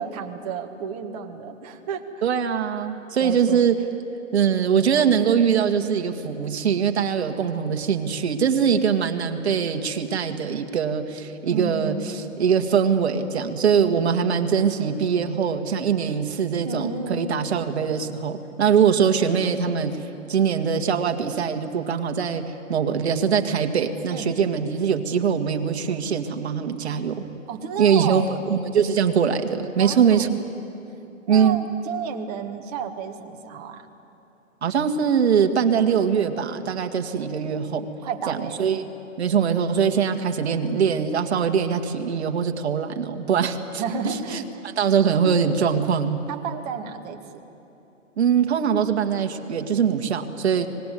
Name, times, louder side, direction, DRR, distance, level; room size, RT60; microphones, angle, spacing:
voice 1, 0.0-2.0 3.2-3.7 11.5-12.1 16.6-17.4 24.1-24.3 27.5-28.2 29.8-30.3 31.3-33.8 38.0-38.6 43.8-44.4 46.3-47.2, right 6 dB, 30° right, 4 dB, 1.8 m, -32 dB
voice 2, 2.2-3.8 4.3-20.0 20.3-22.4 22.7-27.2 27.8-30.3 31.3-31.6 34.6-37.9 38.3-38.9 39.2-46.2 48.2-50.7, right 7 dB, 55° right, 7 dB, 2.0 m, -22 dB
25.0 x 20.0 x 9.4 m, 2.9 s
hypercardioid pair, 150°, 40 cm